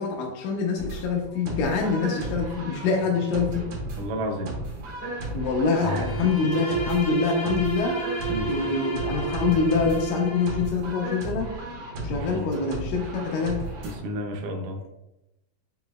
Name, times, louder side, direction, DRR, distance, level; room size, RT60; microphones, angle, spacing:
voice 1, 0.0-3.7 5.3-8.0 8.5-11.5 12.0-13.6, left 5 dB, 80° left, -1 dB, 2.2 m, -25 dB
sound 1, 0.8-14.0, right 2 dB, 60° right, 1.8 m, -35 dB
voice 2, 4.0-4.5 5.8-6.3 8.3-8.5 12.1-12.5 13.8-14.8, equal, 80° right, 3 dB, 1.9 m, -31 dB
Bowed string instrument, 5.9-10.8, right 5 dB, 55° left, 2.7 m, -31 dB
5.5 x 4.1 x 2.2 m, 0.90 s
omnidirectional pair, 4.1 m